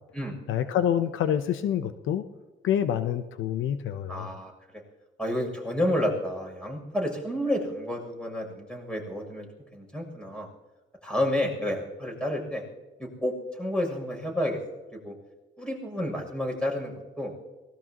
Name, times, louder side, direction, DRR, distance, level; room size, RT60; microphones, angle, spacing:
voice 1, 0.5-2.2 2.6-4.3, left 9 dB, 80° left, 11 dB, 0.8 m, -27 dB
voice 2, 4.1-4.5 5.2-9.5 9.7-10.5 11.0-12.6 13.0-14.6 15.0-15.1 15.6-17.3, left 1 dB, 5° left, 1 dB, 7.3 m, -30 dB
23.5 x 19.5 x 3.0 m, 1.2 s
cardioid pair, 90°, 20 cm